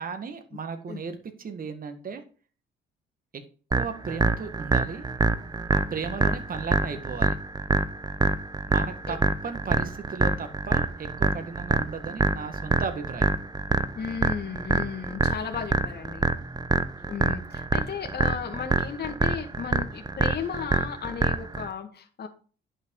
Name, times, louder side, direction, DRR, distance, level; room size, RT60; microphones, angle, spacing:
voice 1, 0.0-2.2 3.3-3.4 3.7-5.0 5.7-7.4 8.7-13.3 16.3-16.7, right 5 dB, 45° right, 7 dB, 1.9 m, -35 dB
sound 1, 3.7-21.7, right 3 dB, 20° right, 0.9 m, -26 dB
voice 2, 14.0-16.3 17.1-22.3, left 7 dB, 55° left, 4 dB, 1.9 m, -34 dB
10.5 x 6.4 x 4.8 m, 0.38 s
cardioid pair, 90°, 20 cm